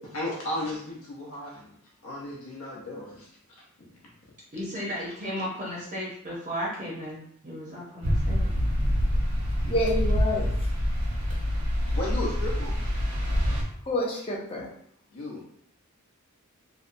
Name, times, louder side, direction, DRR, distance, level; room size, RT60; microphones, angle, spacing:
voice 1, 0.0-1.7 2.0-3.3 3.8-3.9 11.9-12.7 15.1-15.4, left 1 dB, 70° left, -4 dB, 0.7 m, -34 dB
voice 2, 4.5-8.5, equal, 35° right, -5 dB, 0.6 m, -34 dB
sound 1, 8.0-13.6, equal, 90° right, 0.9 m, -26 dB
voice 3, 9.6-10.5 13.9-14.7, left 1 dB, 25° left, -2 dB, 0.5 m, -28 dB
2.7 x 2.1 x 2.5 m, 0.66 s
head